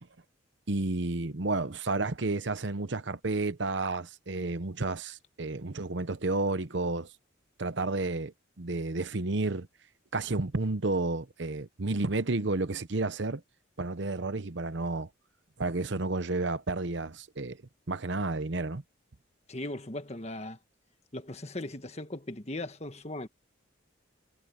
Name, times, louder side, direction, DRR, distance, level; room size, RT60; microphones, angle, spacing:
voice 1, 0.7-7.1 7.6-9.7 10.1-13.4 13.8-15.1 15.6-17.6 17.9-18.8, right 2 dB, 65° right, 0.9 m, -31 dB
voice 2, 19.5-20.6 21.1-23.3, left 1 dB, 35° left, 1.5 m, -38 dB
head